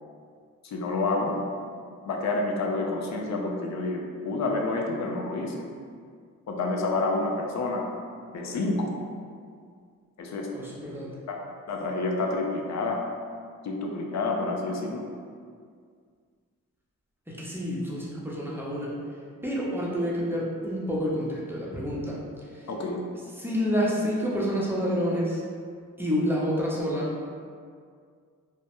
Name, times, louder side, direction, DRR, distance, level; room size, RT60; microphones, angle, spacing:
voice 1, 0.6-1.4 2.0-5.6 6.5-7.9 8.3-9.0 10.2-10.5 11.3-11.4 11.7-13.0 13.6-15.0 22.7-23.0, left 2 dB, 55° left, 1 dB, 0.5 m, -28 dB
voice 2, 10.5-11.2 17.3-18.9 19.4-22.2 22.5-22.7 23.4-25.4 26.0-27.1, equal, 5° right, -6 dB, 0.6 m, -28 dB
2.1 x 2.1 x 2.9 m, 2.1 s
supercardioid pair, 40°, 33 cm